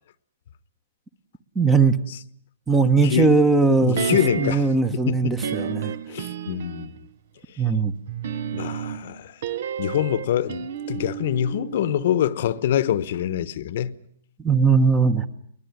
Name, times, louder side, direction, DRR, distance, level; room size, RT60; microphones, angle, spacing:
voice 1, 1.5-2.0 2.7-5.9 7.6-7.9 14.4-15.2, right 4 dB, 10° right, 1.1 m, -19 dB
voice 2, 3.0-3.3 3.8-4.6 4.9-5.4 6.1-6.9 8.5-9.3 9.8-14.0, left 10 dB, 50° left, 1.1 m, -25 dB
sound 1, 4.0-4.8 5.4-7.0 8.1-12.3 12.6-12.7, right 7 dB, 55° right, 1.2 m, -31 dB
22.5 x 21.0 x 9.6 m
hypercardioid pair, 160°, 0 cm